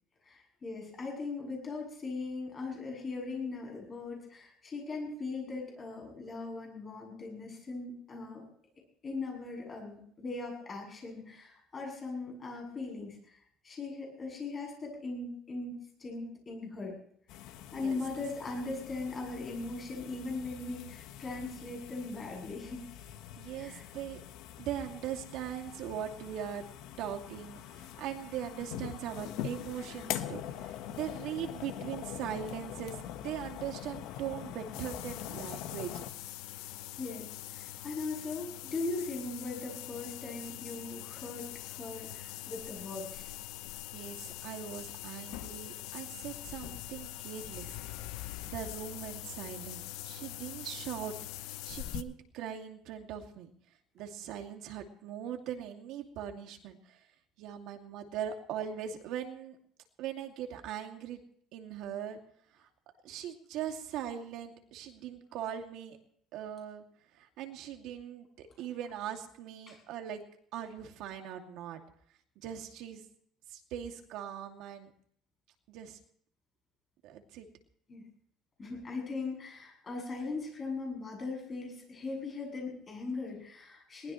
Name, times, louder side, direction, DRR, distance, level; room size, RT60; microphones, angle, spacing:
voice 1, 0.2-8.4 9.0-13.4 13.6-17.0 17.7-22.9 23.6-23.9 37.0-43.3 69.7-69.8 77.9-78.0 78.6-84.1, left 3 dB, 25° left, 0 dB, 7.9 m, -39 dB
sound 1, 17.3-36.1, left 11 dB, 75° left, 1.3 m, -44 dB
voice 2, 23.4-24.2 24.6-26.6 27.0-36.0 43.9-47.8 48.1-51.1 51.4-53.5 53.9-57.0 57.4-59.6 60.0-61.2 61.5-62.2 62.6-62.7 63.0-66.0 66.3-66.8 67.1-70.2 70.5-71.8 72.4-73.0 73.5-74.9 75.7-76.0 77.0-77.5, right 9 dB, 65° right, 3 dB, 2.5 m, -40 dB
sound 2, 34.7-52.0, left 15 dB, 90° left, 0.8 m, -43 dB
22.0 x 20.0 x 3.2 m, 0.63 s
cardioid pair, 155°, 0 cm